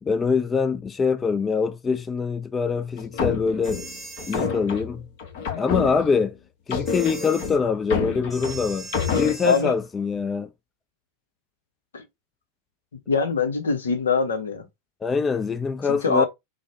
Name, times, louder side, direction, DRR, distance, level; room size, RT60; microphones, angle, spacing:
voice 1, 0.0-3.9 4.3-5.1 5.6-6.4 6.7-10.5 15.0-16.3, left 5 dB, 15° left, 0.3 m, -24 dB
sound 1, 3.0-6.3 6.7-9.3, left 5 dB, 50° left, 1.1 m, -28 dB
sound 2, 3.6-4.5 6.8-7.6 8.3-9.7, right 2 dB, ahead, 0.9 m, -40 dB
voice 2, 9.4-9.7 11.9-12.0 13.1-14.6 15.8-16.3, left 5 dB, 70° left, 0.8 m, -23 dB
4.0 x 2.1 x 4.5 m
figure-of-eight pair, 90°, 0 cm